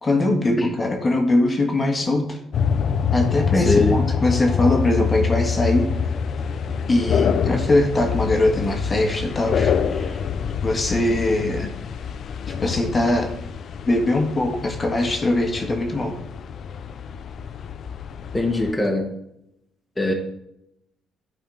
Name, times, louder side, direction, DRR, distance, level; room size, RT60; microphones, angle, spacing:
voice 1, 0.0-2.4 3.1-5.9 6.9-10.2 10.6-11.7 12.5-13.3 13.9-16.1, left 2 dB, 35° left, 3 dB, 1.5 m, -21 dB
sound 1, 2.5-18.7, left 6 dB, 60° left, 0.5 m, -26 dB
voice 2, 3.5-4.0 18.3-19.1 20.0-20.1, left 2 dB, 15° left, 1 dB, 1.3 m, -21 dB
10.5 x 4.2 x 3.9 m, 0.80 s
supercardioid pair, 70°, 0 cm